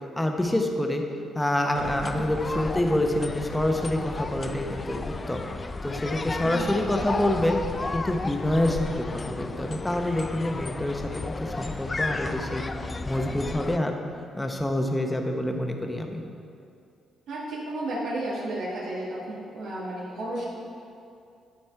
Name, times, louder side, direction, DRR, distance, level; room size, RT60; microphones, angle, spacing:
voice 1, 0.2-1.0 1.3-5.4 5.8-7.6 7.9-12.6 13.0-14.0 14.3-16.2, left 1 dB, 10° left, 3 dB, 0.8 m, -27 dB
sound 1, 1.7-13.8, left 3 dB, 25° left, 0.4 m, -33 dB
voice 2, 17.3-20.4, right 1 dB, 80° right, -7 dB, 2.0 m, -33 dB
11.0 x 4.3 x 4.4 m, 2.5 s
cardioid pair, 90°, 0 cm